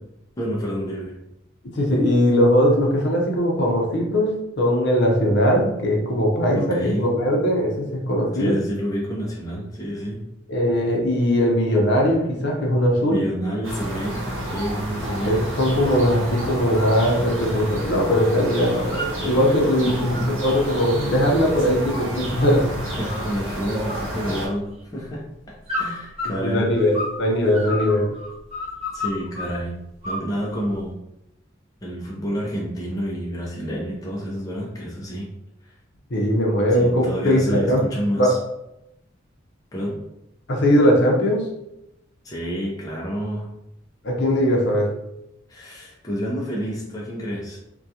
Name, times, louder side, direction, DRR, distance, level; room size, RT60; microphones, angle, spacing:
voice 1, 0.4-1.2 6.6-7.1 8.3-10.3 13.1-15.3 19.8-20.3 22.8-26.7 28.9-29.8 30.0-31.0 31.8-35.3 35.6-35.8 36.8-38.4 39.7-40.0 42.2-43.5 45.5-47.6, equal, 20° left, -4 dB, 0.4 m, -29 dB
voice 2, 1.7-8.6 10.5-13.2 15.0-22.7 26.4-28.1 36.1-37.8 38.2-38.3 40.5-41.5 44.0-44.9, equal, 60° left, -1 dB, 0.6 m, -20 dB
sound 1, 13.6-24.5, right 1 dB, 85° right, 0.7 m, -30 dB
sound 2, 16.6-17.0 17.3-18.3 18.5-19.5 19.9-22.7 23.1-23.6 23.9-24.8 25.7-27.2 27.5-29.6 30.0-30.8, left 1 dB, 30° right, 0.9 m, -32 dB
2.3 x 2.2 x 2.7 m, 0.85 s
head